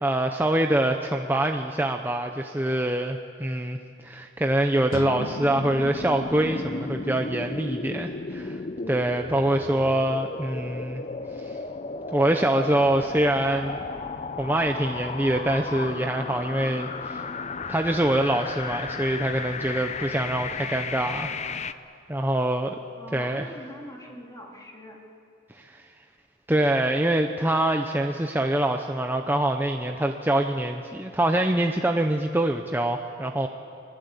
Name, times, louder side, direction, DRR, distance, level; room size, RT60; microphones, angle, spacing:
voice 1, 0.0-8.6 8.9-11.0 11.4-11.5 12.1-13.8 14.4-17.3 17.7-21.7 22.1-22.8 23.1-23.5 25.5-25.8 26.5-33.5, right 1 dB, 10° right, 4 dB, 0.7 m, -25 dB
sound 1, 4.9-7.9, left 2 dB, 80° left, 1.0 m, -41 dB
sound 2, 5.2-21.7, left 4 dB, 30° left, 0.6 m, -34 dB
voice 2, 9.7-10.1 23.0-25.0, equal, 15° left, -1 dB, 3.0 m, -43 dB
26.0 x 21.0 x 8.3 m, 2.6 s
head